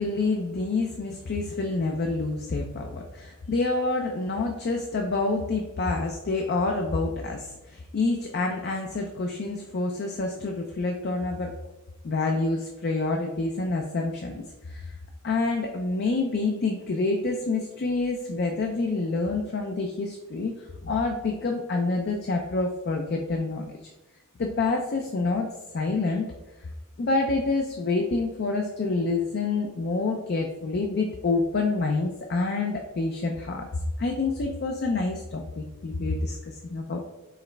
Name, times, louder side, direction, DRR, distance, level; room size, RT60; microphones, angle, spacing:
voice 1, 0.0-11.5 12.0-15.0 15.2-23.8 24.4-25.5 25.7-26.3 26.6-26.7 27.0-37.0, left 3 dB, 50° left, 3 dB, 0.4 m, -27 dB
4.7 x 3.1 x 3.2 m, 1.1 s
head